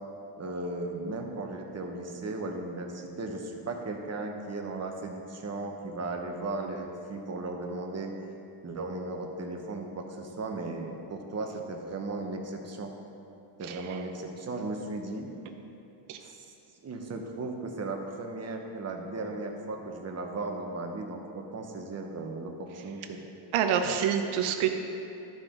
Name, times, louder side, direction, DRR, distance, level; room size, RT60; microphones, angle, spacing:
voice 1, 0.4-8.1 8.6-12.9 13.6-15.3 16.2-16.5 16.8-23.2, right 2 dB, 30° right, 2 dB, 1.0 m, -36 dB
voice 2, 23.5-24.7, right 8 dB, 75° right, 5 dB, 0.8 m, -26 dB
13.0 x 4.9 x 3.8 m, 2.9 s
cardioid pair, 105°, 49 cm